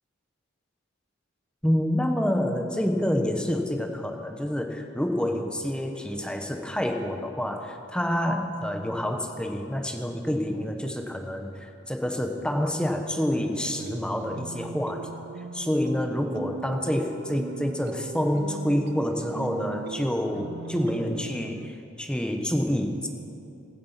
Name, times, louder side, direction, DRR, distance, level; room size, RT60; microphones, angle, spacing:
voice 1, 1.6-15.1 15.5-23.1, equal, 5° left, 4 dB, 1.1 m, -28 dB
sound 1, 13.2-21.7, right 5 dB, 55° right, 0.4 m, -40 dB
16.5 x 14.5 x 5.8 m, 2.7 s
head